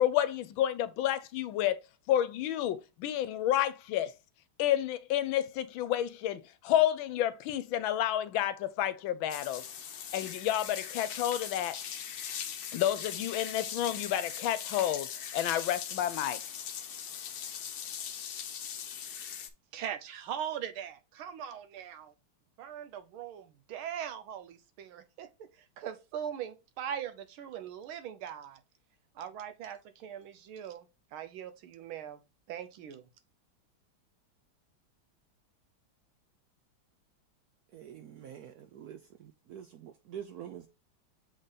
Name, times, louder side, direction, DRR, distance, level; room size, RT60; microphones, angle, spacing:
voice 1, 0.0-1.8 2.1-4.1 4.6-9.7 10.1-11.8 12.7-16.4, left 12 dB, 80° left, 1.4 m, -30 dB
sound 1, 9.3-19.5, left 8 dB, 60° left, 1.1 m, -40 dB
voice 2, 19.7-22.1 22.6-28.6 29.1-32.2 32.5-33.1, right 9 dB, 90° right, 1.7 m, -41 dB
voice 3, 37.7-40.7, right 9 dB, 75° right, 0.9 m, -46 dB
6.5 x 3.8 x 4.0 m
omnidirectional pair, 2.2 m